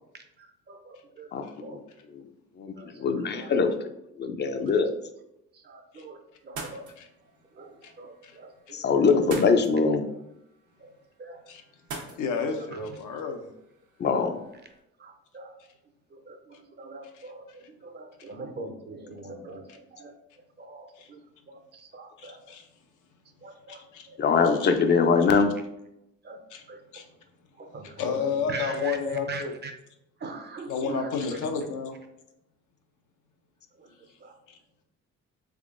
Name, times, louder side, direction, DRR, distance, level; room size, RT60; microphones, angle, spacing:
voice 1, 0.1-1.8 2.8-3.5 4.7-4.8 5.5-6.9 7.5-9.1 10.8-10.9 11.2-11.4 12.0-12.2 12.6-12.8 15.0-15.6 16.1-20.1 20.6-22.5 23.4-24.2 26.2-26.4 26.7-27.1 27.6-29.7 30.2-31.4 33.7-34.4, right 3 dB, 35° right, 6 dB, 0.6 m, -43 dB
voice 2, 2.6-3.7 4.2-4.9 8.7-10.0 14.0-14.4 24.2-25.5, left 5 dB, 35° left, 7 dB, 0.4 m, -22 dB
sound 1, 6.4-14.8, right 3 dB, 75° right, 0.9 m, -46 dB
voice 3, 12.2-13.5 21.0-21.1 22.2-22.7 23.7-24.1 24.4-24.7 25.3-25.4 26.5-26.6 26.9-27.1 28.0-29.5 30.7-32.0 34.5-34.6, left 5 dB, 80° left, 4 dB, 0.6 m, -31 dB
3.5 x 3.3 x 2.5 m, 0.85 s
cardioid pair, 90°, 30 cm